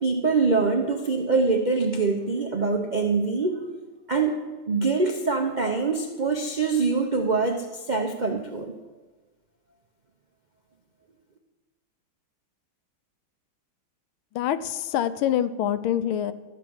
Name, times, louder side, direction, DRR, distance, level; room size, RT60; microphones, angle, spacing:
voice 1, 0.0-3.6 4.1-4.4 4.7-8.7, right 4 dB, 75° right, 2 dB, 0.4 m, -24 dB
voice 2, 14.3-16.3, left 10 dB, 85° left, 13 dB, 1.5 m, -25 dB
13.0 x 5.6 x 7.9 m, 1.3 s
omnidirectional pair, 2.2 m